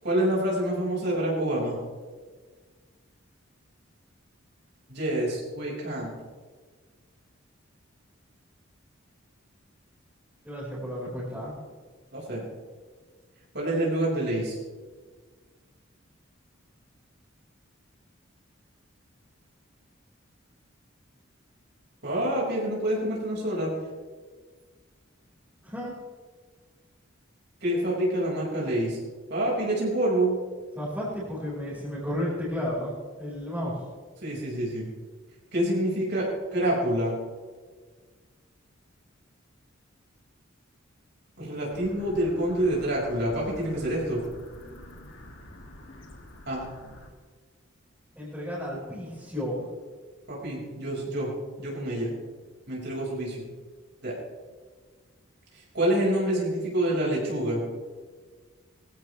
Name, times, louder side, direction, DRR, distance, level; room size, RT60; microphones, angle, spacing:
voice 1, 0.0-1.8 4.9-6.1 12.1-12.4 13.5-14.6 22.0-23.7 27.6-29.0 29.3-30.4 34.2-34.9 35.5-37.1 41.4-44.2 46.5-46.6 50.3-51.3 51.6-52.1 52.7-53.4 54.0-54.2 55.5-57.6, right 1 dB, 55° right, -4 dB, 6.1 m, -27 dB
voice 2, 10.4-11.5 25.6-25.9 30.8-33.8 48.2-49.7, equal, 10° right, -10 dB, 5.8 m, -33 dB
sound 1, 41.7-47.1, left 1 dB, 70° left, 2.8 m, -47 dB
23.0 x 16.5 x 3.5 m, 1.5 s
head